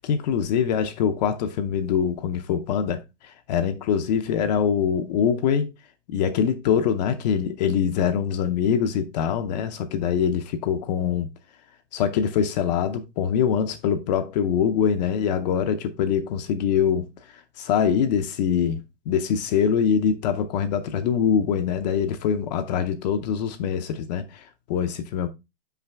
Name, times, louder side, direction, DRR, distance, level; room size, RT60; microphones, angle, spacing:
voice 1, 0.0-5.7 6.1-11.3 11.9-17.1 17.6-18.8 19.1-24.4 24.7-25.3, left 8 dB, 35° left, 0.6 m, -24 dB
5.8 x 4.8 x 3.4 m
hypercardioid pair, 150°, 37 cm